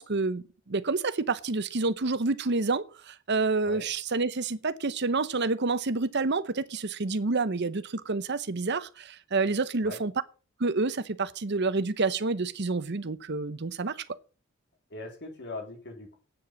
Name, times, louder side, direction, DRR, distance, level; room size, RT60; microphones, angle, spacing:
voice 1, 0.0-10.1 10.6-14.0, right 3 dB, 55° right, 0.8 m, -28 dB
voice 2, 14.9-16.2, left 3 dB, 55° left, 3.9 m, -40 dB
8.8 x 7.8 x 7.2 m
head